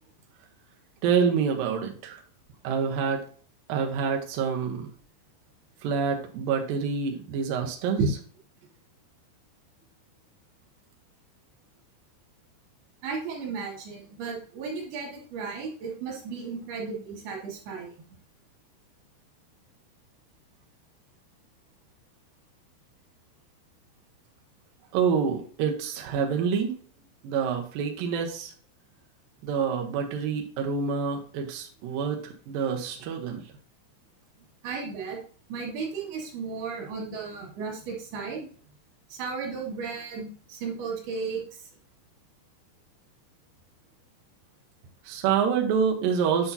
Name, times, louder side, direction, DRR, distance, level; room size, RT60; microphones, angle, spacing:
voice 1, 1.0-2.2 2.6-3.3 3.7-4.9 5.8-8.0 24.9-26.7 27.2-28.5 29.4-33.4 45.0-46.5, right 6 dB, 90° right, 2 dB, 2.0 m, -27 dB
voice 2, 13.0-18.0 34.6-35.2 35.5-38.5 39.1-41.7, right 4 dB, 60° right, 0 dB, 3.7 m, -34 dB
8.4 x 6.0 x 2.7 m, 0.43 s
omnidirectional pair, 5.5 m